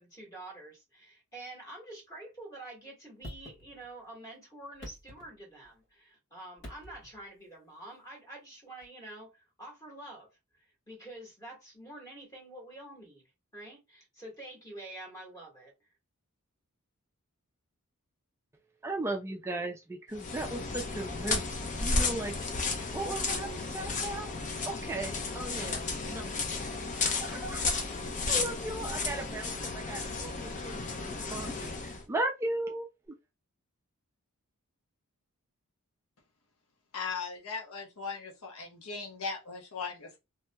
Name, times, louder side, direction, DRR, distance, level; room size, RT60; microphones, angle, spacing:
voice 1, 0.0-10.3 10.5-13.2 13.5-15.7, right 1 dB, 15° left, 1.5 m, -47 dB
sound 1, 3.2-4.1 4.6-5.8 6.6-7.3 8.8-8.9, equal, 55° left, 1.5 m, -48 dB
voice 2, 18.8-21.5 21.8-22.4 22.9-24.4 24.6-26.3 27.0-27.8 28.3-32.9, right 2 dB, 10° right, 0.4 m, -37 dB
sound 2, 20.1-32.0, left 3 dB, 35° left, 0.5 m, -33 dB
voice 3, 36.9-40.2, left 5 dB, 75° left, 0.9 m, -38 dB
3.0 x 2.8 x 2.2 m
head